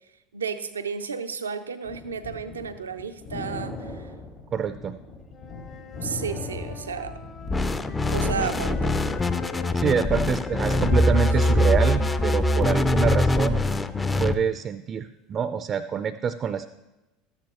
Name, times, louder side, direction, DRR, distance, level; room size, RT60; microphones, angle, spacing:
voice 1, 0.3-4.1 6.0-7.2 8.1-8.9, right 6 dB, 90° right, 9 dB, 0.5 m, -32 dB
sound 1, 1.8-7.5 7.9-9.8, left 3 dB, 70° left, 3.8 m, -37 dB
voice 2, 4.5-5.0 9.7-13.6 14.2-16.7, right 7 dB, 40° right, 12 dB, 0.4 m, -26 dB
Wind instrument woodwind instrument, 5.3-9.8 10.4-14.1, left 7 dB, 40° left, 1.1 m, -42 dB
sound 2, 7.5-14.3, left 1 dB, 20° left, 0.5 m, -23 dB
13.0 x 8.9 x 2.9 m, 1.0 s
hypercardioid pair, 75°, 0 cm